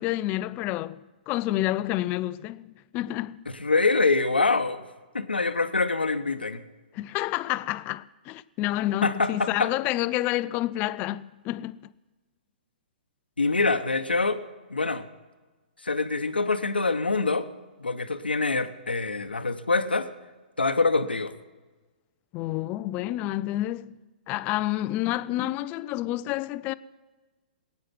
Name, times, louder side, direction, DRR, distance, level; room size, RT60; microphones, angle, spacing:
voice 1, 0.0-3.4 6.9-11.8 22.3-23.9 24.3-26.7, left 15 dB, 30° left, 0.5 m, -29 dB
voice 2, 3.6-4.8 5.1-6.6 9.0-9.7 13.4-14.4 14.7-15.0 15.8-17.5 17.8-20.1 20.6-21.3, left 3 dB, 90° left, 1.0 m, -25 dB
21.0 x 9.6 x 6.0 m
figure-of-eight pair, 125°, 5 cm